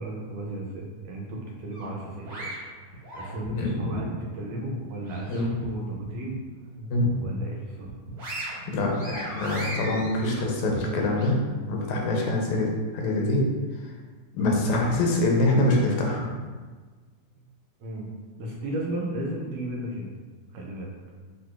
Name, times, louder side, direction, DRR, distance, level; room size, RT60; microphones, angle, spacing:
voice 1, 0.0-2.5 2.8-6.4 7.2-7.9 17.8-18.1 18.4-20.1 20.5-20.9, right 1 dB, 75° right, -1 dB, 1.7 m, -34 dB
sound 1, 1.7-3.8 4.2-5.7 6.0-6.2 6.6-7.4 7.8-11.3, right 1 dB, 50° right, 1.2 m, -38 dB
voice 2, 3.5-4.0 5.3-5.5 6.9-7.1 8.7-11.4 11.7-12.7 12.9-13.4 14.3-16.4, left 2 dB, 85° left, 0 dB, 2.1 m, -24 dB
7.8 x 2.7 x 2.4 m, 1.4 s
omnidirectional pair, 3.3 m